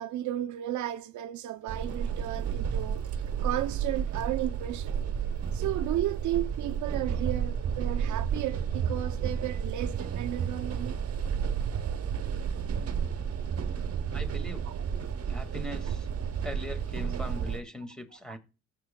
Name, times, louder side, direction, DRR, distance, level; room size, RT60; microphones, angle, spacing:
voice 1, 0.0-3.0 3.4-5.0 5.5-11.0, right 13 dB, 75° right, 0.6 m, -33 dB
sound 1, 1.7-17.6, right 7 dB, 50° right, 1.0 m, -31 dB
voice 2, 14.1-14.7 15.3-16.1 16.4-18.4, left 1 dB, ahead, 1.9 m, -40 dB
15.0 x 7.5 x 2.2 m
cardioid pair, 90°, 30 cm